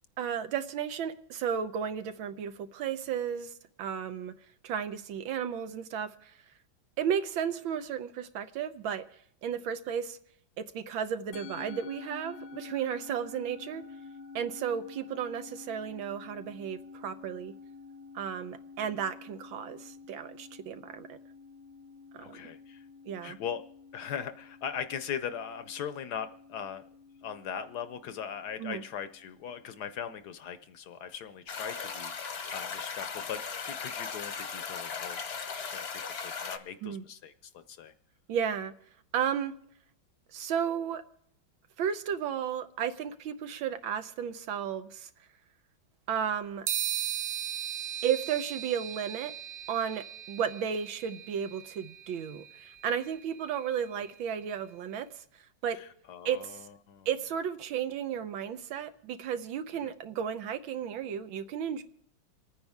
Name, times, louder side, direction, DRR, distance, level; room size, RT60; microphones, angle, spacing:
voice 1, 0.2-4.3 4.6-6.3 7.0-9.0 9.4-10.2 10.6-13.8 14.3-17.5 18.1-21.2 22.1-22.4 23.1-23.4 28.6-28.8 36.8-37.0 38.3-38.7 39.1-39.5 40.3-41.0 41.8-45.1 46.1-46.7 48.0-49.3 49.7-55.1 55.6-55.8 56.2-56.6 57.1-61.8, right 8 dB, 85° right, 9 dB, 1.7 m, -33 dB
Musical instrument, 11.3-29.8, left 4 dB, 85° left, 1.6 m, -49 dB
voice 2, 22.2-22.9 23.2-23.6 23.9-26.8 27.2-37.9 55.7-57.1 59.8-59.9, left 8 dB, 65° left, 10 dB, 1.1 m, -40 dB
sound 1, 31.5-36.6, left 5 dB, 45° left, 0.9 m, -37 dB
sound 2, 46.7-54.3, right 10 dB, 60° right, 1.1 m, -38 dB
27.5 x 9.5 x 3.5 m, 0.70 s
omnidirectional pair, 2.1 m